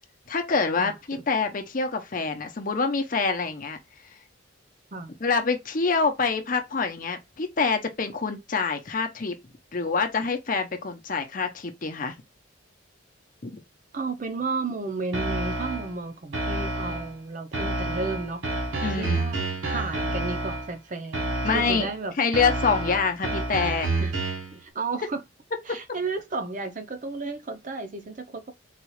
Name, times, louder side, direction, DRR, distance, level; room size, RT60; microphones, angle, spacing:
voice 1, 0.3-3.8 5.2-9.4 9.7-12.2 13.4-13.6 18.8-19.2 21.4-21.9 22.2-23.9, left 4 dB, 45° left, 0.7 m, -26 dB
voice 2, 0.8-1.2 4.9-5.1 13.9-18.4 18.7-22.2 24.0-24.1 24.5-25.2 25.7-28.5, right 3 dB, 40° right, 0.6 m, -33 dB
sound 1, 15.1-15.9 16.3-17.1 17.5-20.7 21.1-21.9 22.3-24.5, right 2 dB, 80° right, 1.1 m, -29 dB
4.0 x 2.4 x 3.1 m
head